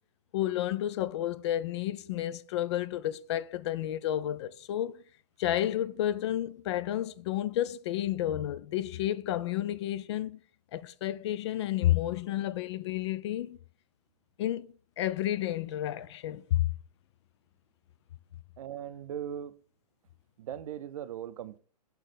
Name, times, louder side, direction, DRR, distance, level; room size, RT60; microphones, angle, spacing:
voice 1, 0.3-5.0 5.4-10.4 10.7-13.6 14.4-14.7 15.0-16.7, left 12 dB, 45° left, 0.4 m, -31 dB
voice 2, 18.6-19.6 20.4-21.6, right 10 dB, 55° right, 0.5 m, -39 dB
6.5 x 3.1 x 5.1 m
figure-of-eight pair, 110°, 21 cm